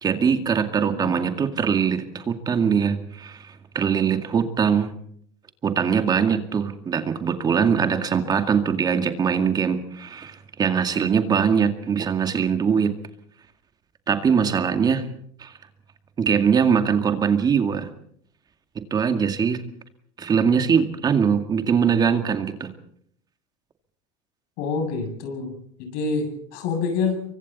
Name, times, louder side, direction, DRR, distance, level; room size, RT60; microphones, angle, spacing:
voice 1, 0.0-4.9 5.6-12.9 14.1-15.1 15.4-15.5 16.2-17.9 18.9-19.6 20.2-22.7, right 7 dB, 25° right, 7 dB, 2.2 m, -22 dB
voice 2, 0.7-1.2 24.6-27.2, left 4 dB, 70° left, 6 dB, 7.5 m, -27 dB
28.5 x 24.0 x 4.2 m, 0.64 s
supercardioid pair, 130°, 15 cm